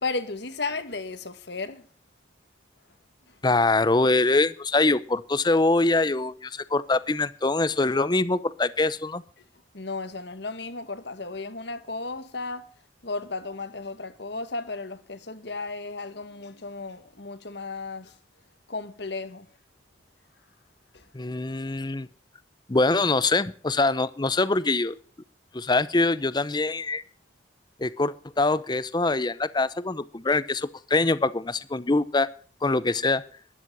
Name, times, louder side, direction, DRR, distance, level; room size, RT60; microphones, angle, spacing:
voice 1, 0.0-1.8 3.3-3.4 9.7-12.7 13.0-18.1 18.7-19.5 20.9-21.1, left 3 dB, 65° left, 1.7 m, -34 dB
voice 2, 3.4-9.2 21.1-22.1 22.7-25.0 25.5-27.0 27.8-32.3 32.6-33.2, left 3 dB, 25° left, 0.7 m, -24 dB
12.5 x 11.0 x 7.3 m
head